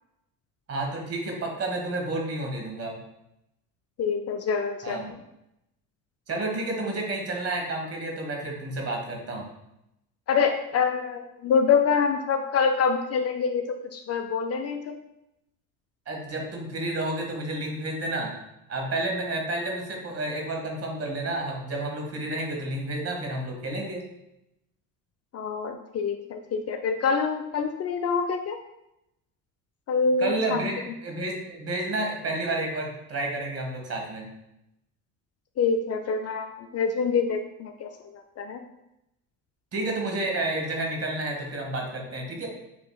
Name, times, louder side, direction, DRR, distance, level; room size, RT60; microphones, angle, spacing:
voice 1, 0.7-3.0 4.8-5.1 6.3-9.5 16.1-18.3 18.7-24.0 30.2-34.3 39.7-42.5, right 2 dB, 40° right, 1 dB, 1.4 m, -30 dB
voice 2, 4.0-5.0 10.3-15.0 25.3-28.6 29.9-30.7 35.6-38.6, left 5 dB, 40° left, 6 dB, 0.4 m, -26 dB
7.3 x 2.9 x 2.3 m, 0.85 s
supercardioid pair, 90°, 38 cm